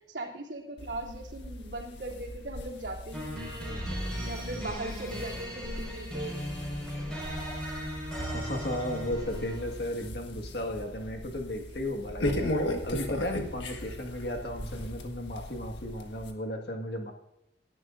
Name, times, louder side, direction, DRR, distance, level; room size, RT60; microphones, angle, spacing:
voice 1, 0.1-3.9 4.3-6.4, right 1 dB, 80° right, -2 dB, 3.0 m, -39 dB
sound 1, 0.8-16.3, left 1 dB, 85° left, 1.6 m, -38 dB
sound 2, 3.1-9.8, equal, 5° left, 5.5 m, -37 dB
voice 2, 8.2-12.5 12.8-17.1, left 1 dB, 65° left, 2 dB, 1.9 m, -35 dB
26.0 x 11.0 x 2.6 m, 0.82 s
head